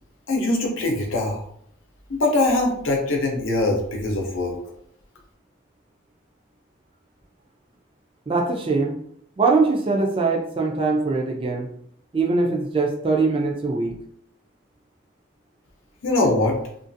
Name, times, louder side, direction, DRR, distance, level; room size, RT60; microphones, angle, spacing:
voice 1, 0.3-1.4 2.2-4.6 16.0-16.6, left 2 dB, 85° left, 0 dB, 0.7 m, -22 dB
voice 2, 8.3-9.0 9.4-11.7 12.1-13.9, right 3 dB, 25° right, 1 dB, 0.4 m, -22 dB
2.5 x 2.4 x 2.5 m, 0.69 s
head